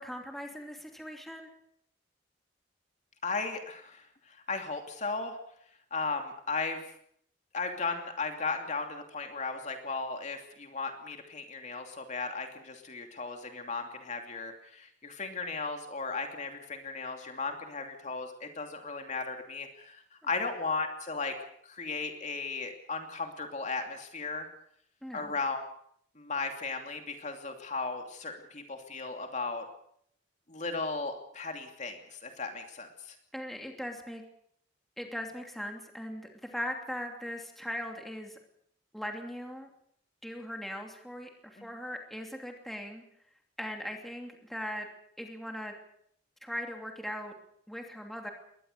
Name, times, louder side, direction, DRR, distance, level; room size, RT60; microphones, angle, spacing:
voice 1, 0.0-1.5 25.0-25.4 33.3-34.2 35.0-38.4 38.9-39.7 40.2-43.0 43.6-44.9 45.2-45.7 46.4-47.3 47.7-48.3, equal, ahead, 2 dB, 2.9 m, -39 dB
voice 2, 3.2-5.4 5.9-6.8 7.5-21.3 21.6-24.5 25.1-25.6 26.2-29.7 30.5-33.1 41.6-41.7, left 4 dB, 40° left, 4 dB, 2.8 m, -36 dB
22.0 x 19.0 x 6.8 m, 0.69 s
head